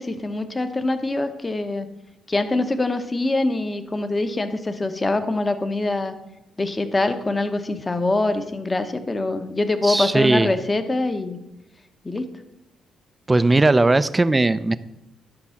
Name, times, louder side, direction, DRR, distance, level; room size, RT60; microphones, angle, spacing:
voice 1, 0.0-1.9 2.3-6.1 6.6-11.4 12.0-12.3, left 2 dB, 20° left, 9 dB, 0.9 m, -24 dB
voice 2, 9.8-10.5 13.3-14.8, right 2 dB, 20° right, 14 dB, 0.5 m, -18 dB
10.5 x 6.1 x 5.7 m, 0.91 s
cardioid pair, 90°, 0 cm